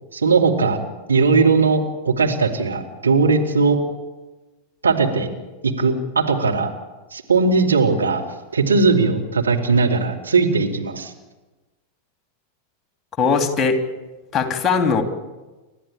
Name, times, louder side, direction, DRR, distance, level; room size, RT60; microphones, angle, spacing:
voice 1, 0.1-0.8 1.1-3.8 4.8-5.3 5.6-6.7 7.1-8.2 8.5-11.1, right 4 dB, 75° right, 1 dB, 2.9 m, -18 dB
voice 2, 13.2-13.8 14.3-15.0, left 5 dB, 20° left, 7 dB, 3.1 m, -19 dB
29.5 x 13.5 x 8.9 m, 1.2 s
figure-of-eight pair, 90°, 0 cm